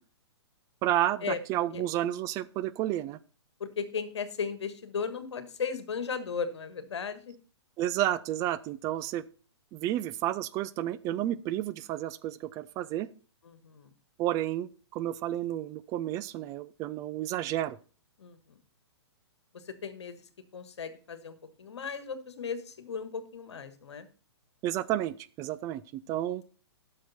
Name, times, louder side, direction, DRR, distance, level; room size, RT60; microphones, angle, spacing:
voice 1, 0.8-3.2 7.8-9.2 9.7-13.1 14.2-17.8 24.6-26.4, right 13 dB, 25° right, 15 dB, 0.4 m, -31 dB
voice 2, 3.6-7.3 13.4-13.9 18.2-18.6 19.5-24.1, left 6 dB, 75° left, 11 dB, 1.5 m, -36 dB
10.0 x 6.5 x 4.2 m, 0.38 s
hypercardioid pair, 130°, 15 cm